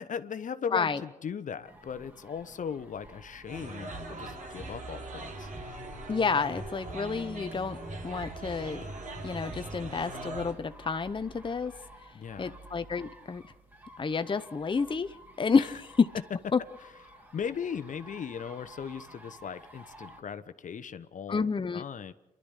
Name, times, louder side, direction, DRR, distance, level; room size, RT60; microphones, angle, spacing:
voice 1, 0.0-5.5 12.1-12.6 15.6-15.7 17.1-21.4 21.7-22.1, left 7 dB, 55° left, 13 dB, 1.0 m, -38 dB
voice 2, 0.7-1.0 6.1-7.8 8.0-8.8 9.2-11.7 12.4-13.4 14.0-16.1 16.5-16.6 21.3-21.8, left 5 dB, 35° left, 10 dB, 0.8 m, -29 dB
sound 1, 1.6-20.2, right 1 dB, 15° right, 3.3 m, -52 dB
sound 2, 3.5-10.5, right 2 dB, 55° right, 3.6 m, -41 dB
28.5 x 12.0 x 8.3 m, 1.0 s
supercardioid pair, 50°, 15 cm